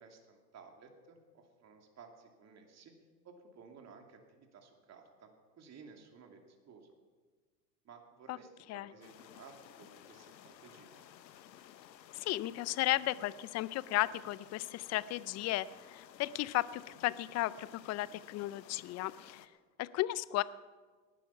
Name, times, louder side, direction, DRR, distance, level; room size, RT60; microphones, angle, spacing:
voice 1, 0.0-2.9 3.2-5.3 5.6-6.9 7.8-11.0, right 5 dB, 30° right, 3 dB, 2.7 m, -56 dB
sound 1, 9.0-19.5, left 11 dB, 85° left, 1.1 m, -56 dB
voice 2, 12.1-19.5 19.8-20.4, left 16 dB, 35° left, 18 dB, 0.6 m, -35 dB
19.0 x 11.5 x 5.8 m, 1.4 s
hypercardioid pair, 90°, 50 cm